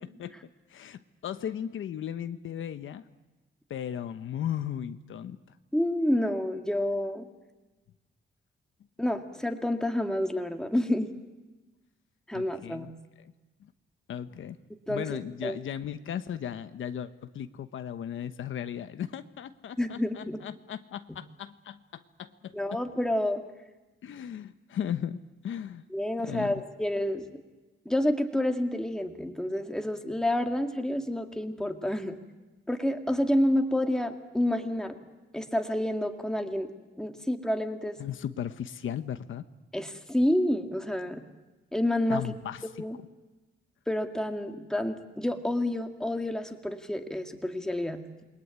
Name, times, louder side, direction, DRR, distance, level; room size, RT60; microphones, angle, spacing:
voice 1, 0.7-3.0 3.7-5.4 12.3-12.9 13.2-13.3 13.6-13.7 14.1-14.6 14.9-22.8 24.0-25.8 26.3-26.6 38.0-39.4 42.1-42.6, left 9 dB, 75° left, 10 dB, 1.1 m, -36 dB
voice 2, 5.7-7.3 9.0-11.1 12.3-12.9 14.9-15.6 19.8-20.4 22.5-23.4 25.9-27.4 27.9-32.2 32.7-35.0 35.3-36.7 37.0-38.0 39.7-41.2 41.7-42.3 42.8-43.0 43.9-48.0, left 1 dB, 5° left, 4 dB, 2.2 m, -29 dB
28.0 x 21.5 x 9.6 m, 1.2 s
wide cardioid pair, 145°, 21 cm